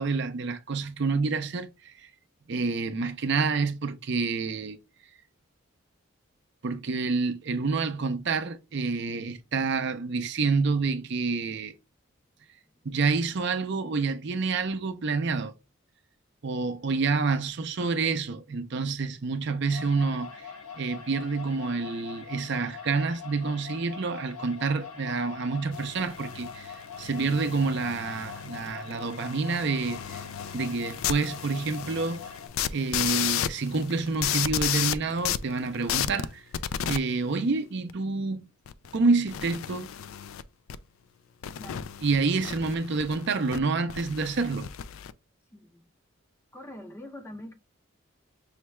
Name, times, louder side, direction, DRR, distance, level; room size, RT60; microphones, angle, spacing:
voice 1, 0.0-2.1 2.5-4.8 6.6-11.7 12.8-15.5 16.4-30.2 30.5-32.3 32.7-36.4 36.9-38.5 38.9-39.9 42.0-44.7, right 4 dB, 55° right, 0.5 m, -28 dB
sound 1, 19.7-32.5, left 6 dB, 90° left, 0.9 m, -43 dB
sound 2, 25.7-37.0 37.9-38.0 38.7-39.0 39.3-40.4 40.7-40.8 41.4-43.6 43.9-45.1, left 10 dB, 75° left, 0.3 m, -34 dB
voice 2, 41.6-41.9 45.5-45.9 46.5-47.5, left 1 dB, 10° left, 0.5 m, -44 dB
5.6 x 2.2 x 3.0 m
head